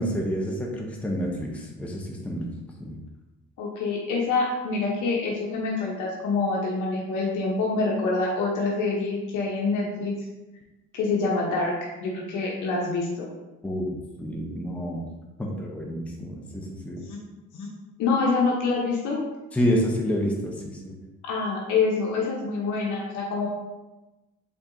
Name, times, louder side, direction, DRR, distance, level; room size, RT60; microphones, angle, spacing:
voice 1, 0.0-2.5 2.8-3.0 13.6-13.9 14.2-15.1 15.4-17.0 19.5-21.0, equal, 5° left, -1 dB, 0.6 m, -28 dB
voice 2, 3.6-10.1 10.9-11.7 12.0-13.3 17.0-17.2 17.5-17.7 18.0-19.2 21.2-23.5, left 3 dB, 80° left, -3 dB, 0.8 m, -26 dB
4.5 x 3.6 x 2.6 m, 1.1 s
cardioid pair, 90°, 30 cm